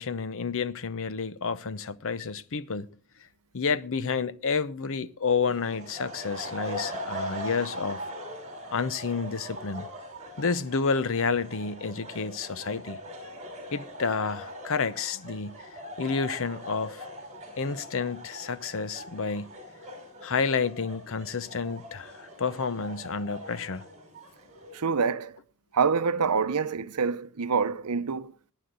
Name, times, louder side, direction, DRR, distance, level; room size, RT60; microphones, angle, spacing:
voice 1, 0.0-2.9 3.5-8.0 8.7-9.9 10.4-13.0 13.7-15.6 16.0-17.0 17.6-19.5 20.2-23.8, left 5 dB, 65° left, 0.7 m, -30 dB
sound 1, 5.4-24.8, equal, 35° right, 4.4 m, -41 dB
voice 2, 24.7-25.4 25.7-28.3, right 5 dB, 85° right, 0.7 m, -26 dB
18.0 x 9.7 x 3.9 m
head